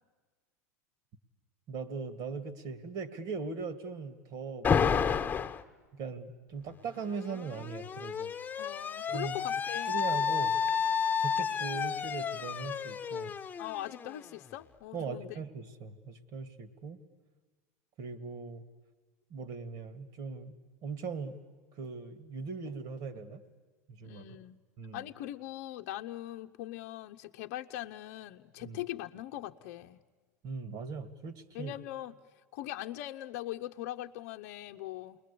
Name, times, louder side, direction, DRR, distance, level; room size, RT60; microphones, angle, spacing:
voice 1, 1.7-5.3 5.9-8.3 9.1-9.4 9.9-10.6 11.2-13.3 14.9-17.0 18.0-18.6 19.3-20.6 20.8-21.4 21.8-23.4 23.9-24.2 24.8-25.0 28.6-28.8 30.4-31.7, right 5 dB, 50° right, 13 dB, 2.2 m, -40 dB
Alarm, 4.6-5.6 6.8-14.5, left 6 dB, 20° left, 1.5 m, -31 dB
voice 2, 8.6-10.0 13.6-15.4 24.0-24.6 24.9-30.0 31.5-32.1 32.5-35.2, left 14 dB, 60° left, 5 dB, 0.8 m, -41 dB
29.0 x 21.0 x 8.5 m, 1.4 s
hypercardioid pair, 90°, 8 cm